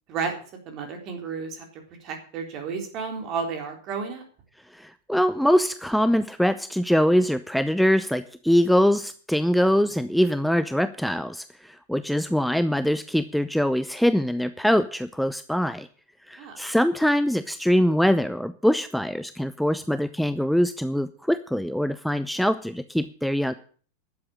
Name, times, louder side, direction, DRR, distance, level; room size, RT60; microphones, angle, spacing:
voice 1, 0.7-1.7 2.0-4.2 16.4-16.6, right 5 dB, 40° right, 3 dB, 3.8 m, -32 dB
voice 2, 4.7-15.9 16.3-23.5, equal, ahead, 12 dB, 0.5 m, -23 dB
11.5 x 7.8 x 8.6 m, 0.44 s
figure-of-eight pair, 90°, 0 cm